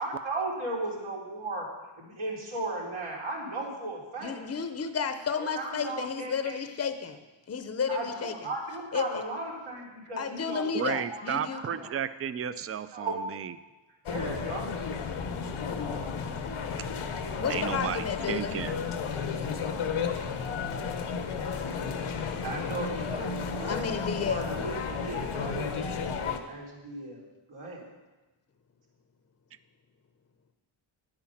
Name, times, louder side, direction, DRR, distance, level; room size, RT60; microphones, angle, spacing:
voice 1, 0.0-1.7 2.0-4.4 5.4-6.6 7.9-11.9 12.9-13.2 14.1-14.7 22.4-27.2 27.5-27.8, right 2 dB, 80° right, -4 dB, 3.4 m, -36 dB
voice 2, 4.2-7.2 7.5-8.3 8.9-9.2 10.2-11.6 17.4-18.6 23.7-24.5, left 6 dB, 30° left, 8 dB, 0.7 m, -32 dB
voice 3, 10.7-13.5 16.8-16.9 17.5-18.8, right 8 dB, 30° right, 13 dB, 0.4 m, -33 dB
sound 1, 14.1-26.4, left 5 dB, 85° left, 1.1 m, -33 dB
10.5 x 8.8 x 5.8 m, 1.1 s
wide cardioid pair, 125°, 48 cm